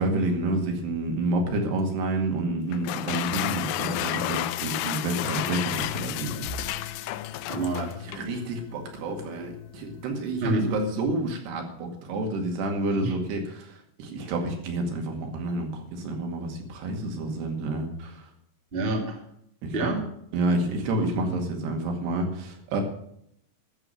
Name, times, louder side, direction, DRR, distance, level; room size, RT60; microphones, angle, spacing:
voice 1, 0.0-6.4 7.8-18.3 19.6-19.9 20.3-22.8, right 2 dB, 80° right, 3 dB, 4.2 m, -29 dB
sound 1, 2.7-8.3, left 15 dB, 85° left, 2.7 m, -31 dB
sound 2, 5.5-10.8, left 6 dB, 65° left, 3.0 m, -42 dB
voice 2, 7.5-7.9 10.4-10.8 13.0-13.1 18.7-19.2 19.7-20.0 21.0-21.4, right 2 dB, 20° right, 1 dB, 1.8 m, -28 dB
13.5 x 7.0 x 7.7 m, 0.71 s
omnidirectional pair, 4.7 m